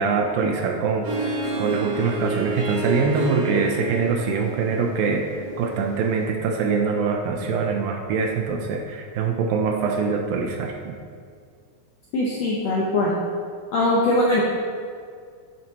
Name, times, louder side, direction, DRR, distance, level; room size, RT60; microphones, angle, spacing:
voice 1, 0.0-10.9, right 5 dB, 75° right, 3 dB, 2.3 m, -24 dB
Harp, 1.0-6.3, right 2 dB, 55° right, 3.1 m, -30 dB
voice 2, 12.1-13.1 13.7-14.4, left 1 dB, 70° left, -4 dB, 1.6 m, -21 dB
10.5 x 9.1 x 4.2 m, 2.1 s
omnidirectional pair, 4.6 m